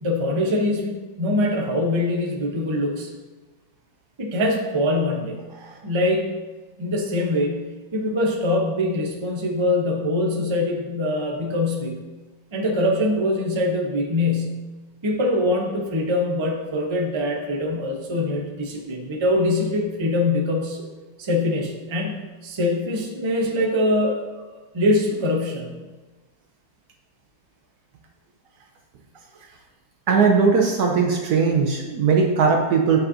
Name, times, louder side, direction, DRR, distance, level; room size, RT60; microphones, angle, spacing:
voice 1, 0.0-3.1 4.2-6.3 6.8-12.0 12.5-14.7 15.0-20.8 21.2-25.8 29.4-29.5, left 1 dB, 25° right, 0 dB, 0.6 m, -23 dB
voice 2, 30.1-33.0, right 5 dB, 65° right, 1 dB, 1.1 m, -19 dB
10.0 x 5.4 x 2.8 m, 1.2 s
omnidirectional pair, 2.1 m